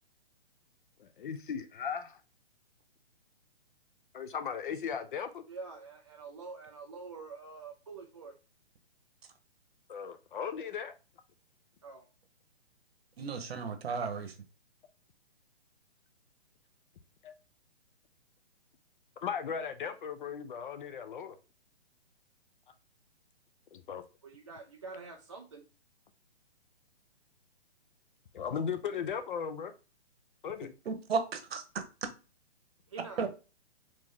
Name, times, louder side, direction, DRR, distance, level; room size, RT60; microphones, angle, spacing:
voice 1, 1.0-2.2 4.1-5.4 9.9-10.9 17.2-17.3 19.2-21.4 23.7-24.0 28.3-29.7 30.4-30.7, left 7 dB, 50° left, 0.6 m, -37 dB
voice 2, 5.5-8.3 11.8-12.1 24.2-25.6 32.9-33.3, right 4 dB, 30° right, 0.3 m, -46 dB
voice 3, 13.2-14.3 30.8-31.6 33.2-33.3, right 5 dB, 65° right, 1.1 m, -34 dB
4.3 x 3.0 x 3.6 m
hypercardioid pair, 155°, 33 cm